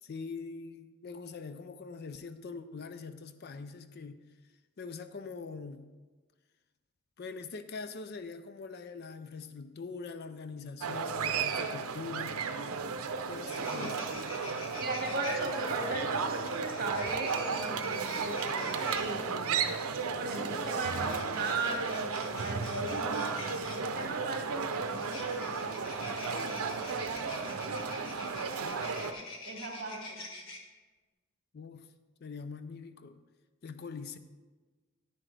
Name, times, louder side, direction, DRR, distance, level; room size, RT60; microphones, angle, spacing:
voice 1, 0.0-4.2 4.8-5.8 7.2-12.4 13.3-14.0 31.5-31.9 32.2-33.2 33.6-34.2, left 4 dB, 45° left, 11 dB, 0.4 m, -43 dB
sound 1, 10.8-29.1, right 5 dB, 85° right, 0.6 m, -34 dB
sound 2, 13.3-15.4 16.4-19.1 20.5-23.9 24.8-30.6, left 2 dB, 65° left, 1.3 m, -46 dB
voice 2, 13.6-14.1 14.8-19.6 20.2-28.7 29.4-30.2, right 2 dB, 40° right, 0 dB, 2.0 m, -38 dB
9.9 x 9.8 x 3.3 m, 1.3 s
head